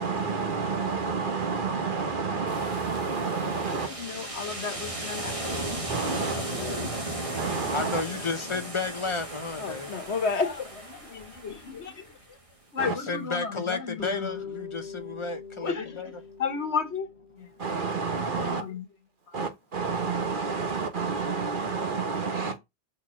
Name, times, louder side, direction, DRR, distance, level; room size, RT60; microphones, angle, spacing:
voice 1, 0.0-3.9 5.7-6.5 7.2-8.0 12.8-12.9 17.6-18.6 19.3-22.6, right 4 dB, 50° right, 1.3 m, -30 dB
sound 1, 2.5-12.2, right 1 dB, 30° right, 2.0 m, -36 dB
voice 2, 3.7-5.7 6.1-6.9 7.8-8.0 8.4-8.6 9.6-11.9 12.7-14.4 15.6-17.1 17.4-17.5 18.1-18.9 19.3-19.4 22.3-22.6, left 5 dB, 90° left, 1.7 m, -33 dB
voice 3, 7.7-9.9 12.8-16.1, left 4 dB, 30° left, 1.0 m, -32 dB
Bass guitar, 14.0-18.3, left 6 dB, 70° right, 3.3 m, -42 dB
5.8 x 4.6 x 6.2 m
omnidirectional pair, 1.1 m